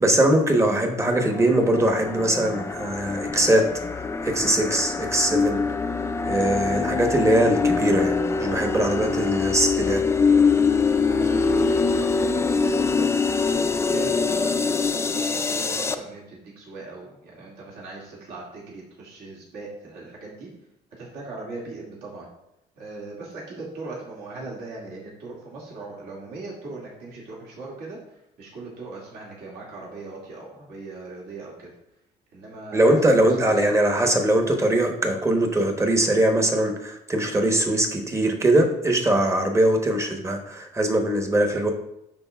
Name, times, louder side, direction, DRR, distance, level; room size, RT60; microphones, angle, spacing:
voice 1, 0.0-3.6 3.9-5.6 6.3-8.1 8.4-10.0 32.7-41.7, right 1 dB, 15° right, 3 dB, 1.0 m, -21 dB
sound 1, 1.0-16.0, left 4 dB, 15° left, 0.3 m, -24 dB
voice 2, 11.1-13.1 13.5-20.5 21.0-22.3 22.8-31.7 32.3-33.6, right 3 dB, 70° right, -4 dB, 2.1 m, -39 dB
11.5 x 3.9 x 2.3 m, 0.84 s
cardioid pair, 110°, 17 cm